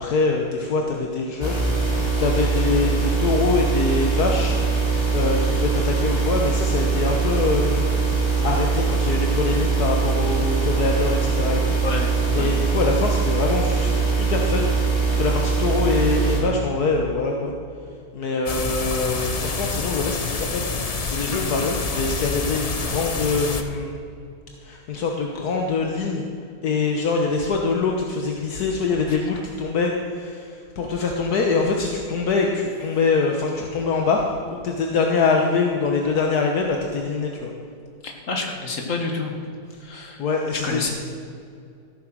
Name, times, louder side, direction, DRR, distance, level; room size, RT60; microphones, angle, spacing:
voice 1, 0.0-4.6 5.1-7.9 8.4-11.8 12.3-17.5 18.1-23.9 24.6-26.2 26.6-37.5 39.7-39.8 40.2-40.9, left 4 dB, 70° left, 1 dB, 1.6 m, -24 dB
sound 1, 1.4-16.4, right 4 dB, 15° left, 2.6 m, -22 dB
sound 2, 18.5-23.6, left 4 dB, 35° left, 0.6 m, -27 dB
voice 2, 38.0-39.3 39.8-40.2 40.6-40.9, left 3 dB, 50° left, 2 dB, 2.1 m, -28 dB
14.5 x 9.0 x 6.3 m, 2.4 s
omnidirectional pair, 1.7 m